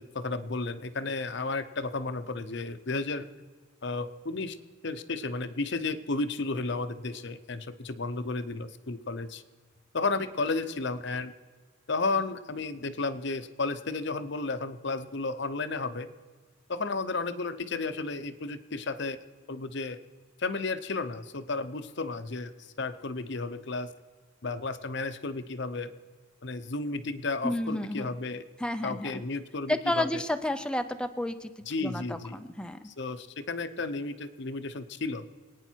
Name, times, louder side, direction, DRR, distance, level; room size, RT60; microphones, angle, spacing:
voice 1, 0.0-3.3 3.8-4.6 4.8-9.4 9.9-11.3 11.9-16.1 16.7-19.2 19.5-20.0 20.4-23.9 24.4-25.9 26.4-28.4 28.8-30.2 31.7-32.4 32.8-35.3, left 3 dB, 55° left, 11 dB, 0.8 m, -33 dB
voice 2, 27.4-28.1 28.6-29.2 29.7-31.5 31.8-32.9, left 1 dB, 5° left, 8 dB, 0.6 m, -31 dB
25.0 x 9.4 x 4.6 m, 1.5 s
head